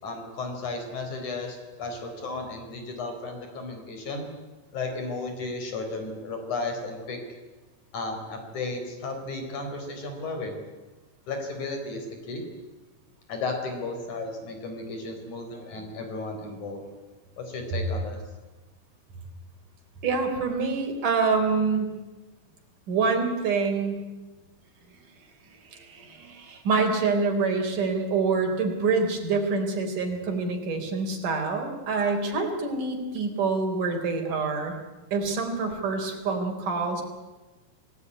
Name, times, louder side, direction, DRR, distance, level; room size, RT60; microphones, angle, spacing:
voice 1, 0.0-4.3 4.7-7.2 7.9-10.6 11.3-12.5 13.3-16.8 17.4-18.2, left 3 dB, 60° left, 5 dB, 5.5 m, -34 dB
voice 2, 20.0-21.9 22.9-24.0 25.7-34.8 35.1-37.0, right 4 dB, 65° right, 3 dB, 5.2 m, -26 dB
28.5 x 17.5 x 9.8 m, 1.2 s
omnidirectional pair, 4.0 m